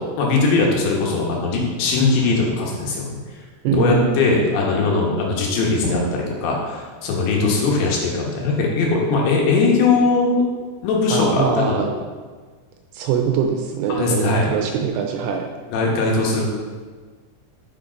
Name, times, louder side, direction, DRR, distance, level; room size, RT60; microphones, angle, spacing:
voice 1, 0.0-3.1 3.8-10.4 10.8-11.8 13.9-14.5 15.7-16.5, left 3 dB, 90° left, -1 dB, 3.4 m, -20 dB
voice 2, 3.6-4.5 11.1-11.9 12.9-15.5, right 6 dB, 85° right, 4 dB, 2.5 m, -22 dB
6.7 x 4.9 x 5.0 m, 1.5 s
omnidirectional pair, 4.9 m